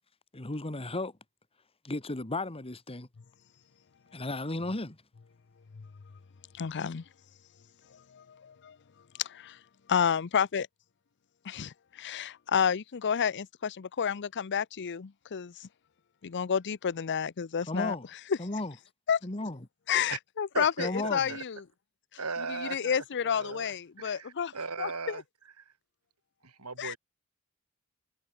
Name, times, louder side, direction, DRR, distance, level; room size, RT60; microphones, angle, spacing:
voice 1, 0.3-1.2 1.8-3.1 4.1-5.0 17.7-18.0 18.4-18.7 19.2-19.6 20.8-21.4, left 2 dB, 25° left, 1.6 m, -34 dB
voice 2, 6.5-7.0 7.9-8.8 9.2-9.6 9.9-10.7 11.4-15.7 16.2-18.0 18.3-18.4 19.1-19.2 19.9-21.6 22.5-25.2 26.8-26.9, left 7 dB, 55° left, 0.6 m, -30 dB
voice 3, 20.5-21.4 22.2-25.2 26.4-27.0, right 4 dB, 80° right, 3.8 m, -38 dB
head